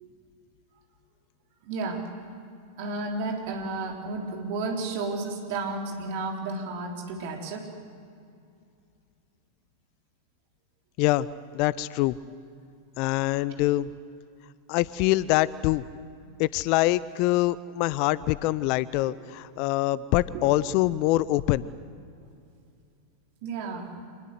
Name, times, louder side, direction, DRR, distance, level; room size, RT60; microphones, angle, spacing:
voice 1, 1.6-2.1 2.8-7.7 20.3-20.5 23.4-23.9, right 3 dB, 50° right, 1 dB, 3.8 m, -32 dB
voice 2, 11.5-12.2 13.0-13.9 14.7-15.8 16.4-21.6, left 17 dB, 45° left, 20 dB, 0.6 m, -24 dB
26.0 x 20.5 x 8.1 m, 2.4 s
figure-of-eight pair, 90°, 0 cm